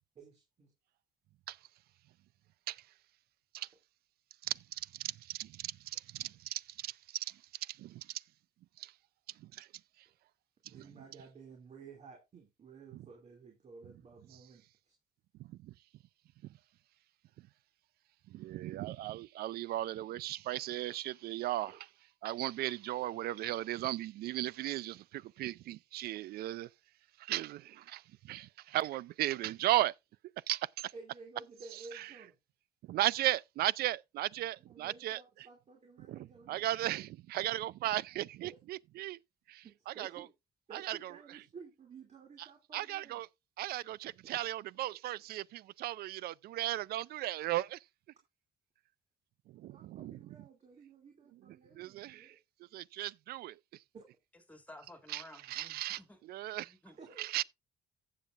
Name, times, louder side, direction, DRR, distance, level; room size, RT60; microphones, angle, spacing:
voice 1, 0.1-0.7 10.6-14.9 21.7-21.8 23.0-23.2 30.9-32.4 34.6-36.6 38.4-38.6 39.6-40.3 40.7-43.3 44.9-45.0 49.7-52.4 53.9-54.0 57.0-57.3, right 4 dB, 40° right, 2.6 m, -54 dB
voice 2, 4.4-8.2 8.8-8.9 9.4-9.7 10.7-10.8 12.9-13.0 15.4-15.7 18.3-21.9 22.2-26.7 27.2-29.9 30.5-30.9 31.9-32.1 32.9-35.2 36.1-39.2 39.5-40.3 40.7-41.1 42.7-43.3 43.6-47.8 49.5-50.4 51.7-52.3 52.7-53.6 55.1-56.0 56.3-56.7 57.2-57.4, right 15 dB, 65° right, 0.4 m, -36 dB
voice 3, 54.5-56.2 56.6-57.0, left 1 dB, 10° left, 2.4 m, -54 dB
15.5 x 7.3 x 2.5 m
cardioid pair, 110°, 17 cm